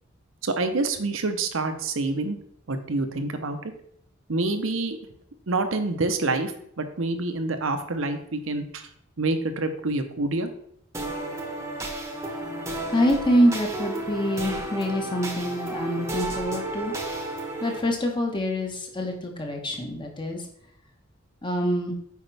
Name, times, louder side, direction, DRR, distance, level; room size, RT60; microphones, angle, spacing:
voice 1, 0.4-2.4 2.7-3.7 4.3-5.0 5.5-6.5 6.8-8.9 9.2-10.5, right 2 dB, 70° right, 8 dB, 0.9 m, -27 dB
sound 1, 10.9-17.8, right 1 dB, 15° right, 1.1 m, -32 dB
voice 2, 12.9-17.0 17.6-20.4 21.4-21.9, equal, 25° left, 2 dB, 1.2 m, -25 dB
8.1 x 5.1 x 3.4 m, 0.70 s
head